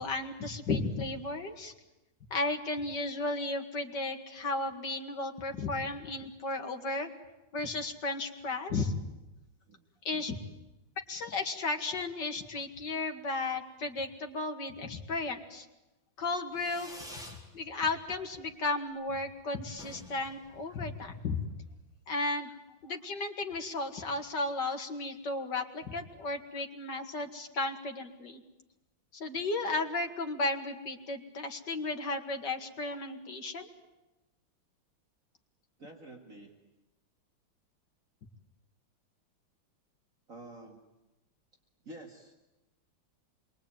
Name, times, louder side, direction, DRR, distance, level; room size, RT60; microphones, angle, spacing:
voice 1, 0.0-1.7 2.3-7.1 7.5-8.9 10.0-10.3 11.1-15.7 16.2-16.9 17.5-21.4 22.1-22.6 22.8-28.4 29.1-33.7, left 3 dB, 60° left, 5 dB, 2.8 m, -34 dB
voice 2, 10.1-10.5 35.8-36.6 40.3-40.8 41.8-42.3, right 2 dB, 40° right, 1 dB, 2.6 m, -49 dB
Fireworks, 16.5-17.5 17.8-18.4 18.6-18.7 19.0-19.1 19.3-19.4 19.7-21.3, left 1 dB, ahead, 4.5 m, -49 dB
27.0 x 22.5 x 9.1 m, 1.0 s
omnidirectional pair, 2.2 m